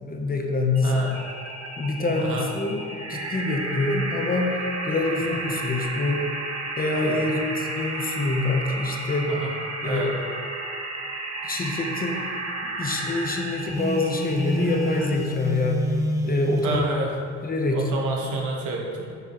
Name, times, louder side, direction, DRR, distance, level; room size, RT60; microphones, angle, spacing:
voice 1, 0.0-1.0 1.8-4.6 4.8-6.2 6.8-9.3 9.8-10.1 11.4-12.2 12.6-15.9 16.2-16.8 17.4-17.9, left 3 dB, 30° left, 2 dB, 0.9 m, -25 dB
sound 1, 0.7-15.3, right 2 dB, 55° right, 1.0 m, -33 dB
voice 2, 2.2-2.5 7.0-7.2 9.4-9.5 9.8-10.1 16.6-17.1 17.7-19.1, right 2 dB, 80° right, -1 dB, 1.3 m, -28 dB
Telephone, 13.7-16.8, right 1 dB, 10° right, 0.7 m, -28 dB
7.5 x 5.7 x 3.1 m, 2.4 s
cardioid pair, 90°, 30 cm